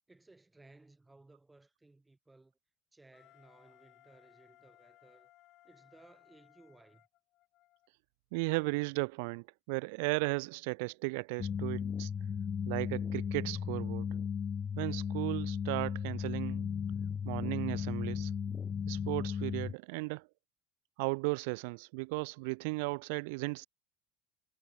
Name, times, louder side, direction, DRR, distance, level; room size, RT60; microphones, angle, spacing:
voice 1, 0.1-2.6 2.9-5.3 5.6-7.0, right 2 dB, 5° right, 7.1 m, -61 dB
Wind instrument woodwind instrument, 3.1-7.9, left 16 dB, 45° left, 5.9 m, -64 dB
voice 2, 8.3-12.1 12.7-14.1 14.8-16.7 17.2-18.3 18.9-20.3 21.0-23.7, right 29 dB, 75° right, 0.7 m, -35 dB
sound 1, 11.4-19.7, left 7 dB, 20° left, 0.4 m, -35 dB
cardioid pair, 165°, 0 cm